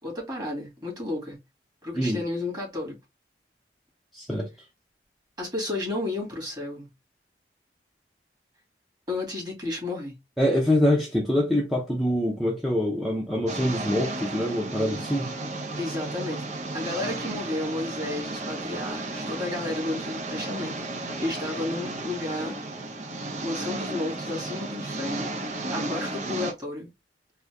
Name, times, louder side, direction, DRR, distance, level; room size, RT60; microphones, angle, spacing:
voice 1, 0.0-1.4 1.8-3.0 5.4-6.9 9.1-10.1 15.8-16.5 16.7-22.6 23.4-25.3 25.7-26.9, left 2 dB, 25° right, 2.2 m, -32 dB
voice 2, 4.1-4.5 10.4-15.3, left 1 dB, ahead, 0.7 m, -25 dB
sound 1, 13.5-26.5, right 2 dB, 40° right, 0.8 m, -33 dB
3.9 x 2.8 x 3.5 m
head